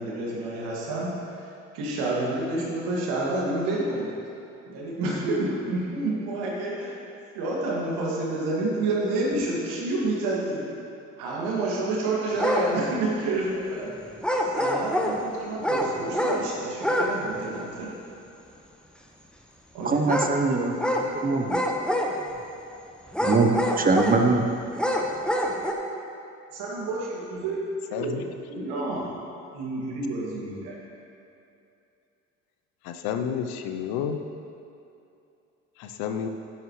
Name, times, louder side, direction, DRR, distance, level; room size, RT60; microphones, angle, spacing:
voice 1, 0.0-1.5 1.7-4.1 4.7-7.0 7.3-10.6 11.2-13.9 14.4-18.0 19.7-20.1 26.5-27.6 28.0-29.1 29.5-30.7, right 2 dB, 75° right, -4 dB, 2.5 m, -29 dB
sound 1, 12.4-12.7 14.2-15.2 15.6-16.4 16.8-17.1 17.4-17.5 20.1-20.3 20.8-21.1 21.5-22.4 23.1-24.2 24.7-25.7, equal, ahead, 1.3 m, -25 dB
voice 2, 19.8-20.7 21.2-21.6 23.2-24.4, right 3 dB, 20° right, 5 dB, 1.1 m, -22 dB
voice 3, 27.9-28.3 32.8-34.2 35.8-36.3, left 8 dB, 70° left, 7 dB, 0.9 m, -30 dB
12.0 x 10.5 x 3.3 m, 2.7 s
hypercardioid pair, 50°, 38 cm